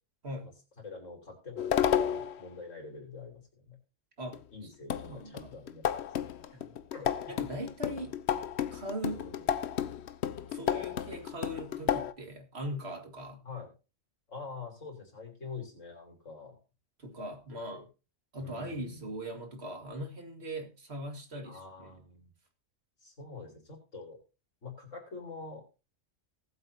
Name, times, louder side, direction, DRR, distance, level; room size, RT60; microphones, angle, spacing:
voice 1, 0.8-3.8 4.2-5.8 6.1-6.6 6.9-7.1 9.1-9.5 13.4-13.7 14.3-16.6 17.5-17.8 18.4-19.1 21.4-22.3 23.0-24.2 24.6-25.6, left 4 dB, 80° left, 1 dB, 4.3 m, -46 dB
sound 1, 1.6-2.4 4.3-4.4 4.9-12.1, left 9 dB, 60° left, 0.9 m, -32 dB
voice 2, 4.2-5.5 6.5-6.7 7.3-8.2 8.7-9.2 10.5-13.4 17.0-17.8 18.3-21.9, equal, 55° right, 4 dB, 2.3 m, -40 dB
19.0 x 8.0 x 2.8 m, 0.30 s
omnidirectional pair, 1.3 m